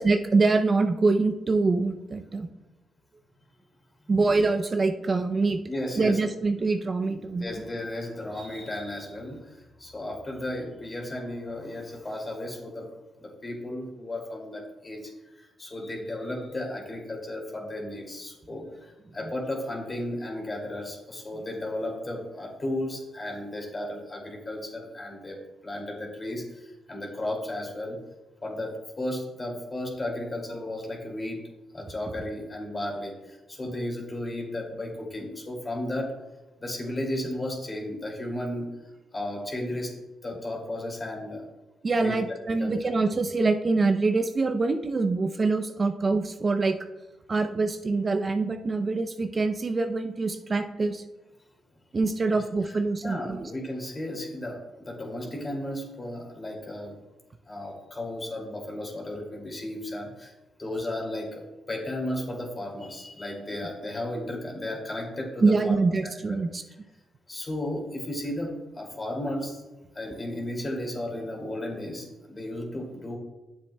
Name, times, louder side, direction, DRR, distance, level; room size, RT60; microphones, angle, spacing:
voice 1, 0.0-2.5 4.1-5.6 6.0-7.6 19.2-19.3 41.8-46.8 47.3-51.0 51.9-53.5 65.4-66.6, right 3 dB, 40° right, 6 dB, 0.5 m, -25 dB
voice 2, 5.7-6.2 7.0-12.9 13.2-25.4 25.6-28.0 28.4-31.4 31.7-36.1 36.6-38.7 39.1-39.9 40.2-41.4 42.0-42.2 42.6-42.7 53.0-57.0 57.5-60.3 60.6-65.7 66.0-66.4 67.3-69.6 69.9-73.2, left 1 dB, 35° left, 0 dB, 2.4 m, -34 dB
9.6 x 7.2 x 2.2 m, 1.1 s
supercardioid pair, 60°, 0 cm